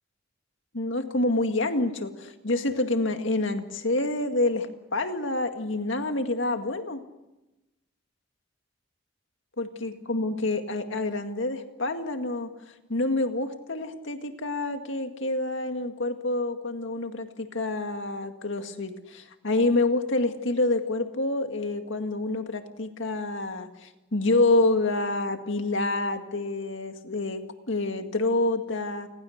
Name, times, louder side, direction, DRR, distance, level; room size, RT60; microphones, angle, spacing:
voice 1, 0.7-7.0 9.6-12.5 12.9-27.4 27.7-29.1, left 2 dB, 70° left, 6 dB, 2.0 m, -27 dB
29.0 x 21.0 x 6.6 m, 1.0 s
head